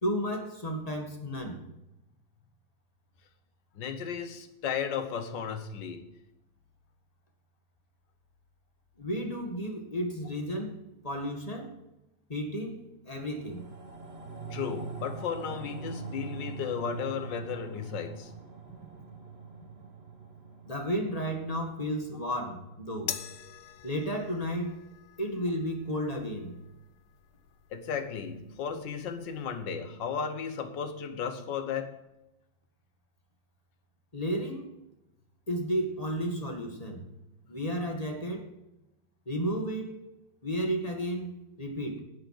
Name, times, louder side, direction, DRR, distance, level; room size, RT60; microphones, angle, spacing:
voice 1, 0.0-1.7 9.0-11.8 12.3-13.7 20.6-23.2 23.8-24.8 25.2-26.6 34.1-34.7 35.5-37.0 37.5-38.5 39.2-40.0 40.4-41.3 41.6-42.0, equal, 20° left, 2 dB, 1.7 m, -33 dB
voice 2, 3.8-6.1 14.5-18.3 27.7-32.1, left 7 dB, 60° left, 8 dB, 1.7 m, -34 dB
sound 1, 13.1-23.7 24.1-24.2, right 4 dB, 30° right, 1.7 m, -44 dB
sound 2, 23.1-29.6, left 12 dB, 85° left, 1.6 m, -45 dB
11.5 x 7.7 x 5.9 m, 0.92 s
omnidirectional pair, 2.3 m